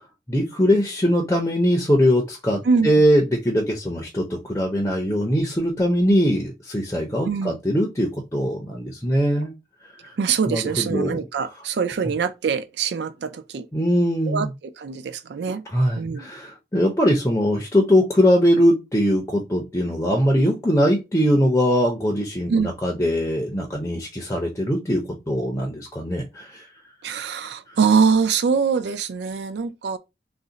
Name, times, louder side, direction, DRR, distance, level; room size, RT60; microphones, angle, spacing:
voice 1, 0.3-9.5 9.8-10.1 10.5-11.2 13.7-14.5 15.7-26.7 27.7-27.8, equal, 15° left, 0.5 m, -21 dB
voice 2, 7.2-7.6 10.2-13.7 14.3-14.5 14.8-15.6 16.0-16.3 22.5-22.7 27.0-30.0, right 5 dB, 75° right, 0.4 m, -23 dB
2.5 x 2.1 x 3.8 m
head